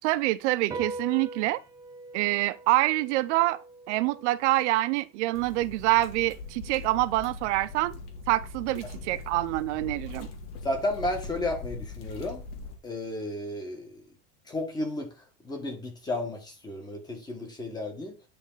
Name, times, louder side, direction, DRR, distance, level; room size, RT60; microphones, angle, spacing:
voice 1, 0.0-1.6 2.1-3.6 3.9-8.0 8.3-10.3, right 18 dB, 80° right, 0.6 m, -26 dB
sound 1, 0.7-7.4, right 3 dB, 10° right, 0.3 m, -43 dB
sound 2, 5.3-12.8, left 3 dB, 80° left, 2.1 m, -41 dB
voice 2, 10.6-12.4 12.8-14.0 14.5-15.1 15.4-18.2, left 1 dB, 10° left, 1.5 m, -33 dB
10.0 x 3.9 x 3.9 m
cardioid pair, 170°, 35 cm